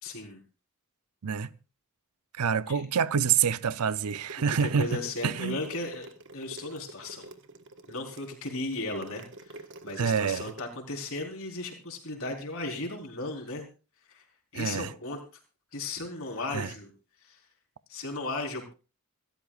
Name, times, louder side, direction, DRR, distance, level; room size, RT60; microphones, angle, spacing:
voice 1, 0.0-0.4 2.7-2.8 4.5-6.1 6.3-7.3 7.9-13.7 14.1-14.2 14.5-15.2 15.7-16.9 17.2-17.4 17.9-18.7, left 2 dB, 65° left, 4.1 m, -36 dB
voice 2, 2.3-5.6 10.0-10.5 14.5-14.9 16.5-16.7, right 7 dB, 85° right, 0.6 m, -27 dB
sound 1, 4.0-10.6, right 2 dB, 60° right, 1.5 m, -46 dB
26.0 x 13.5 x 2.4 m
head